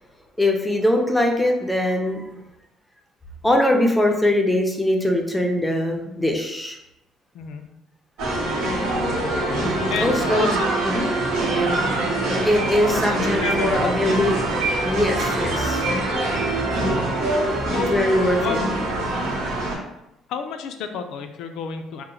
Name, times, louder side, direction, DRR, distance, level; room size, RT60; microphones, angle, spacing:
voice 1, 0.4-2.4 3.4-6.8 10.0-10.5 10.9-11.1 12.4-14.6 14.8-15.9 17.8-18.6, left 1 dB, 5° left, 2 dB, 0.4 m, -22 dB
voice 2, 7.3-7.7 9.9-10.9 11.6-11.9 12.9-14.2 17.7-18.9 20.3-22.0, left 6 dB, 75° left, 6 dB, 0.3 m, -31 dB
sound 1, 8.2-19.7, right 2 dB, 85° right, 0.9 m, -24 dB
2.9 x 2.0 x 3.7 m, 0.85 s
cardioid pair, 135°, 0 cm